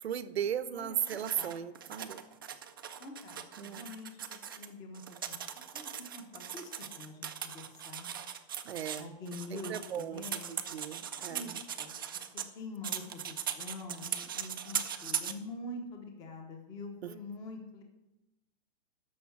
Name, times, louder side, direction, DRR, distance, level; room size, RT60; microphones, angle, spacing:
voice 1, 0.0-2.2 3.6-3.9 8.6-9.1 9.5-11.6 17.0-17.1, right 9 dB, 85° right, 14 dB, 0.9 m, -37 dB
voice 2, 0.7-1.5 3.0-8.1 9.0-10.8 11.3-17.8, left 2 dB, 10° left, 3 dB, 0.8 m, -46 dB
sound 1, 1.0-4.7 4.9-12.5 12.8-15.3, right 8 dB, 25° right, 0.3 m, -39 dB
13.0 x 5.6 x 7.2 m, 0.94 s
hypercardioid pair, 170°, 31 cm